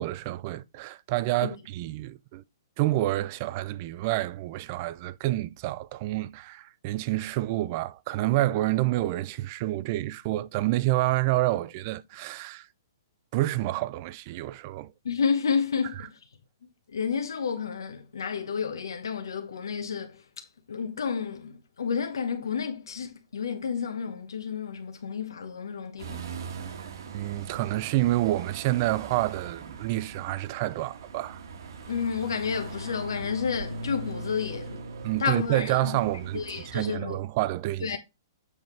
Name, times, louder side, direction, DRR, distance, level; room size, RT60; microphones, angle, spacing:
voice 1, 0.0-2.4 2.8-12.7 13.3-14.9 16.0-16.1 27.1-31.4 35.0-38.0, right 16 dB, 35° right, 0.4 m, -28 dB
voice 2, 15.0-16.1 16.9-20.2 20.7-26.2 31.9-34.8 35.2-36.0 36.3-37.2 37.8-38.0, left 6 dB, 90° left, 1.2 m, -30 dB
sound 1, 26.0-37.0, right 3 dB, 65° right, 1.4 m, -40 dB
8.0 x 3.5 x 4.5 m
hypercardioid pair, 160°, 2 cm